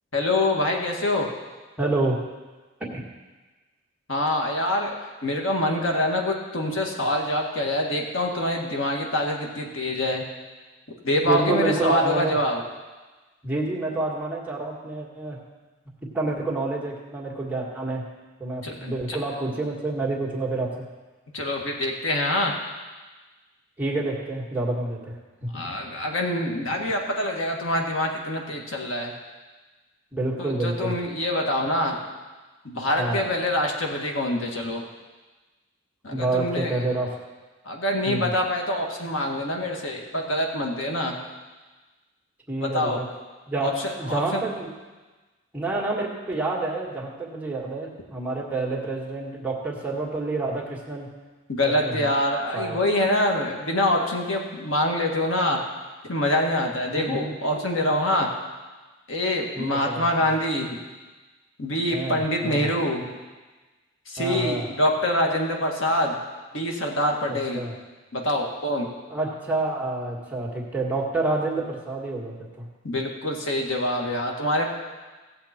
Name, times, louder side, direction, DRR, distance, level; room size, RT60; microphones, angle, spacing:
voice 1, 0.1-1.3 4.1-4.9 5.2-10.2 11.0-12.6 18.6-19.2 21.3-22.5 25.5-29.1 30.4-32.0 32.7-34.8 36.0-36.8 37.7-41.2 42.6-43.0 43.6-44.4 51.5-55.6 56.1-58.3 59.1-60.8 61.6-63.1 64.1-66.2 66.5-67.6 68.1-68.9 72.8-74.7, left 1 dB, 90° left, 1 dB, 1.8 m, -25 dB
voice 2, 1.8-2.2 2.9-3.0 11.2-12.4 13.4-15.4 16.1-18.0 18.4-20.8 23.8-25.2 30.1-31.0 33.0-33.2 36.1-37.1 38.0-38.3 42.5-43.1 43.5-43.7 44.0-44.7 45.5-51.1 51.8-52.1 52.5-52.8 56.9-57.3 59.5-60.3 61.9-62.7 64.2-64.7 67.3-67.8 69.1-72.7, right 2 dB, 10° right, -3 dB, 1.8 m, -28 dB
17.0 x 7.6 x 4.4 m, 1.3 s
head